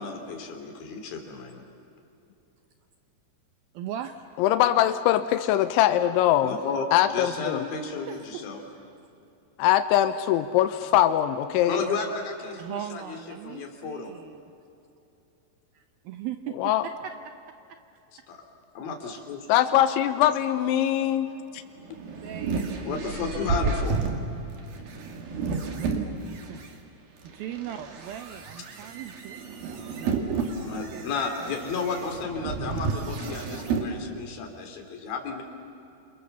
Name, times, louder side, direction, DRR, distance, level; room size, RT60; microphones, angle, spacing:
voice 1, 0.0-1.6 6.4-6.9 7.1-8.6 11.7-13.2 13.4-14.1 18.3-18.4 18.7-19.5 22.8-24.0 30.6-35.4, left 4 dB, 55° left, 4 dB, 4.5 m, -33 dB
voice 2, 3.7-4.2 8.1-8.4 8.7-8.9 12.5-14.4 15.7-17.8 22.2-23.1 26.3-26.6 27.2-31.1 31.4-31.7, right 10 dB, 80° right, 8 dB, 2.1 m, -39 dB
voice 3, 4.4-6.5 6.9-7.7 9.6-11.8 16.6-16.8 19.5-21.6, left 12 dB, 90° left, 10 dB, 3.2 m, -22 dB
sound 1, 21.6-26.7 27.3-33.9, right 4 dB, 60° right, 3.7 m, -31 dB
29.0 x 27.5 x 7.1 m, 2.8 s
omnidirectional pair, 5.2 m